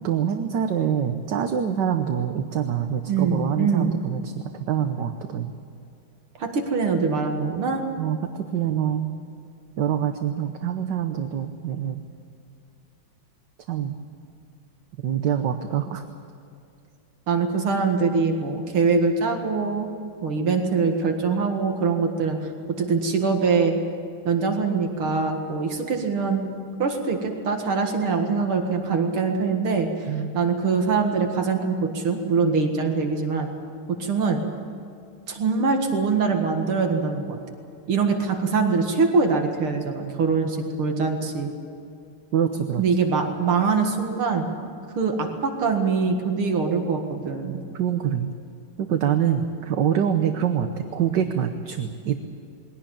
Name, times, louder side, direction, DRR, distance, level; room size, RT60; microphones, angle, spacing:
voice 1, 0.0-5.5 8.0-9.1 9.8-12.0 13.7-14.0 15.0-16.0 30.1-30.3 42.3-42.8 47.7-48.3 48.8-52.1, right 9 dB, 60° right, 7 dB, 1.5 m, -25 dB
voice 2, 3.1-3.9 6.4-7.8 17.3-19.9 20.2-22.4 22.8-23.8 24.2-26.4 26.8-33.5 33.9-34.4 35.3-37.4 37.9-41.5 42.8-44.5 44.9-47.5, right 4 dB, 85° right, 3 dB, 2.7 m, -23 dB
22.5 x 17.0 x 8.9 m, 2.5 s
omnidirectional pair, 2.3 m